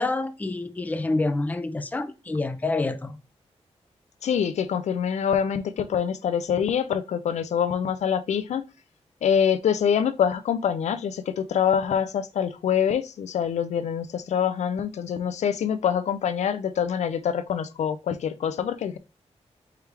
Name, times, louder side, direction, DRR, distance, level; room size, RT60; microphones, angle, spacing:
voice 1, 0.0-3.1, left 2 dB, 15° left, 0.4 m, -27 dB
voice 2, 4.2-8.6 9.2-19.0, left 8 dB, 80° left, 0.4 m, -25 dB
4.7 x 3.3 x 3.3 m
wide cardioid pair, 170°, 12 cm